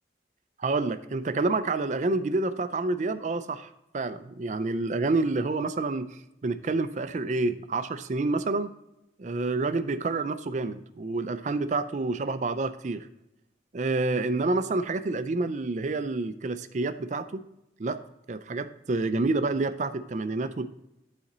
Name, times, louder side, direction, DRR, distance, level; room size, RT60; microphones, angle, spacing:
voice 1, 0.6-8.7 9.2-13.1 13.7-17.4 17.8-18.0 18.3-20.7, right 3 dB, 45° right, 12 dB, 0.4 m, -28 dB
11.0 x 4.2 x 3.9 m, 0.87 s
head